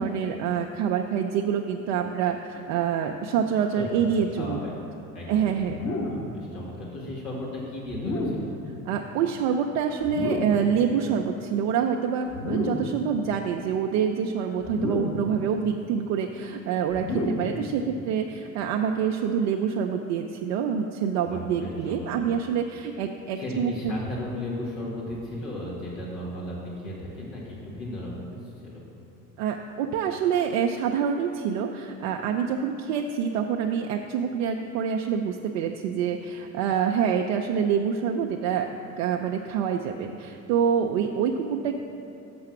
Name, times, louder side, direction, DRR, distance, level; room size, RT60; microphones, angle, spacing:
voice 1, 0.0-4.6 5.3-5.8 8.8-23.9 29.4-38.7 39.0-41.7, right 7 dB, 65° right, 2 dB, 0.5 m, -26 dB
voice 2, 4.4-4.9 5.1-5.5 6.0-8.5 21.2-22.1 23.4-28.3 28.6-28.8, left 1 dB, 75° left, -6 dB, 1.7 m, -35 dB
sound 1, 5.7-6.4 7.9-8.6 10.0-10.7 12.3-13.0 14.6-15.4 16.9-17.6, left 1 dB, 40° left, 1.5 m, -30 dB
6.8 x 5.6 x 5.9 m, 2.7 s
hypercardioid pair, 60°, 43 cm